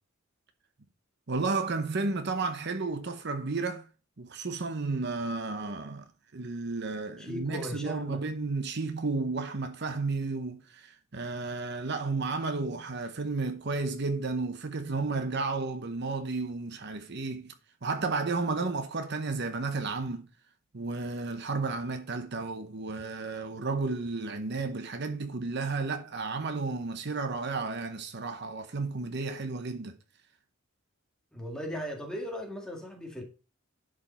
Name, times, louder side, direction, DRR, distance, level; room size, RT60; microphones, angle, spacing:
voice 1, 1.3-3.9 4.2-17.5 17.8-20.3 20.7-30.0, right 3 dB, 55° right, 0.9 m, -32 dB
voice 2, 7.2-8.2 31.3-33.2, equal, 5° left, 2.0 m, -37 dB
11.0 x 5.0 x 4.4 m
head